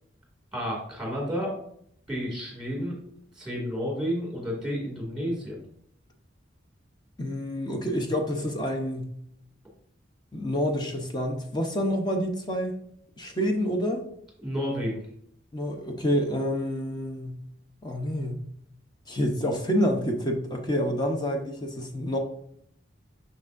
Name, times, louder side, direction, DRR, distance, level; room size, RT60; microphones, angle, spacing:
voice 1, 0.5-1.6 2.1-3.0 3.4-5.6 14.4-15.0, equal, 5° right, -2 dB, 2.2 m, -31 dB
voice 2, 7.2-9.1 10.3-12.7 13.2-14.0 15.5-17.4 17.8-18.4 19.1-22.2, equal, 20° left, 3 dB, 0.7 m, -28 dB
6.4 x 6.0 x 2.5 m, 0.68 s
head